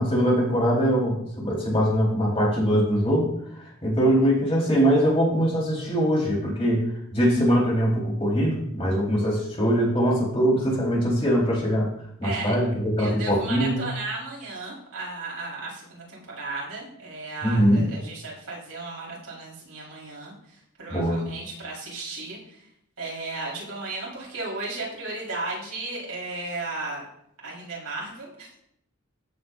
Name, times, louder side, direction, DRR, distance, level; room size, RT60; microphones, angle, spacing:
voice 1, 0.0-3.3 3.8-6.8 7.1-11.9 12.2-13.8 17.4-17.8 20.9-21.2, equal, 30° left, -4 dB, 4.2 m, -22 dB
voice 2, 12.2-12.5 13.0-22.6 23.0-27.0 27.4-28.5, right 3 dB, 80° right, -4 dB, 4.3 m, -35 dB
15.0 x 7.7 x 2.6 m, 0.73 s
head